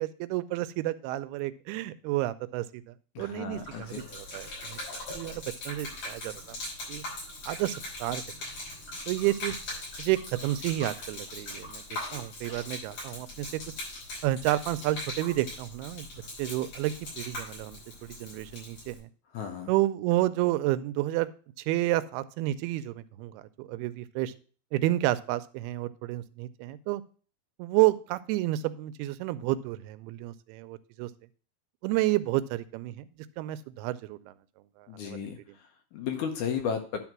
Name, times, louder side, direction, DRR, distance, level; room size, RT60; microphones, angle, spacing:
voice 1, 0.0-6.6 6.9-7.0 7.5-8.2 9.1-9.6 10.0-13.6 14.2-16.1 16.4-19.1 19.7-21.3 21.6-24.3 24.7-27.0 27.6-31.1 31.8-33.1 33.4-34.3 34.8-35.3, right 16 dB, 90° right, 14 dB, 2.6 m, -30 dB
voice 2, 3.2-4.1 19.3-19.7 34.9-37.0, left 7 dB, 75° left, 5 dB, 1.9 m, -34 dB
Gurgling / Liquid, 3.5-19.0, left 2 dB, 50° left, 6.5 m, -40 dB
10.5 x 3.9 x 5.9 m, 0.39 s
omnidirectional pair, 4.4 m